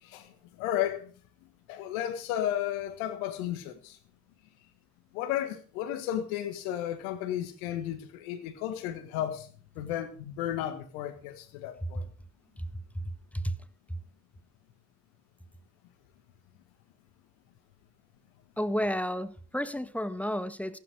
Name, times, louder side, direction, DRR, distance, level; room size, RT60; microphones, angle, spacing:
voice 1, 0.0-1.1 1.4-4.0 5.1-9.5 9.7-12.1, left 11 dB, 85° left, 1.7 m, -33 dB
voice 2, 12.9-13.6 13.9-14.0 18.6-20.8, equal, 5° left, 1.6 m, -32 dB
14.5 x 12.0 x 4.9 m
hypercardioid pair, 45°, 41 cm